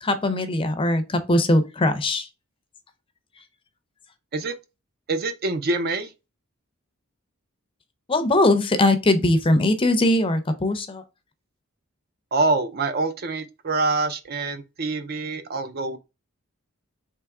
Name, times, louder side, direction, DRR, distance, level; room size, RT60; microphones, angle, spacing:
voice 1, 0.0-2.3 8.1-11.0, left 1 dB, 25° left, 0.5 m, -20 dB
voice 2, 5.1-6.1 12.3-16.0, right 3 dB, 45° right, 0.5 m, -25 dB
3.5 x 2.9 x 4.6 m
head